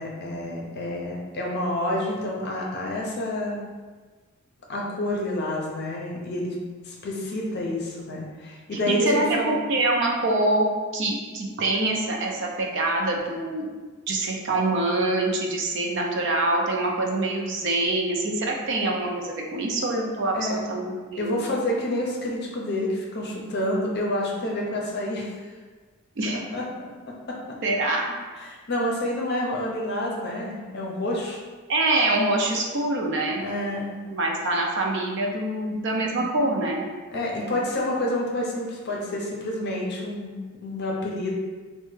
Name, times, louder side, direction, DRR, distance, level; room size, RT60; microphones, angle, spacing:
voice 1, 0.0-3.6 4.7-6.6 6.8-9.6 20.3-20.6 21.2-25.3 26.5-26.6 27.1-27.6 28.4-31.4 33.4-34.0 36.0-36.2 37.1-41.3, left 1 dB, 50° left, -2 dB, 0.6 m, -28 dB
voice 2, 8.7-13.7 14.1-21.5 26.2-26.4 27.6-28.1 31.7-33.4 34.1-36.9, right 2 dB, 55° right, 0 dB, 0.5 m, -25 dB
3.2 x 2.1 x 3.2 m, 1.4 s
head